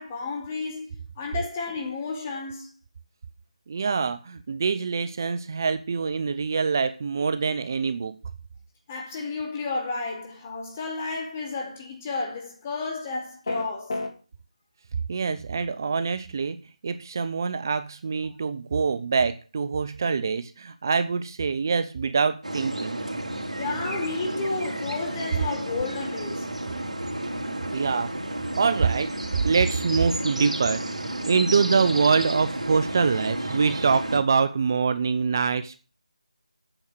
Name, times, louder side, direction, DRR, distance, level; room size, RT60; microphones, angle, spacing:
voice 1, 0.0-2.7 8.9-14.0 23.6-26.6, left 3 dB, 20° left, 2.5 m, -32 dB
voice 2, 3.7-8.2 15.1-16.6 16.8-23.0 27.7-28.1 28.4-29.2 29.4-35.8, right 5 dB, 30° right, 0.5 m, -25 dB
sound 1, 13.4-14.1, left 2 dB, 45° left, 2.1 m, -29 dB
sound 2, 22.4-34.2, right 1 dB, 75° right, 2.7 m, -32 dB
8.8 x 6.3 x 7.9 m
figure-of-eight pair, 165°, 4 cm